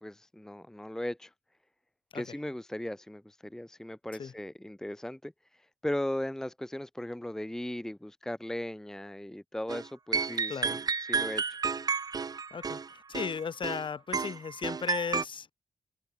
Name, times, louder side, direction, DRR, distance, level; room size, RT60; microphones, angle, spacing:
voice 1, 0.0-1.3 2.1-5.3 5.8-10.8 11.1-11.6, left 1 dB, 5° left, 1.0 m, -37 dB
sound 1, 9.7-9.9 10.1-13.8 14.1-15.2, right 5 dB, 35° right, 1.1 m, -31 dB
voice 2, 10.5-10.8 12.5-15.5, left 6 dB, 45° left, 2.9 m, -36 dB
wide cardioid pair, 165°, 11 cm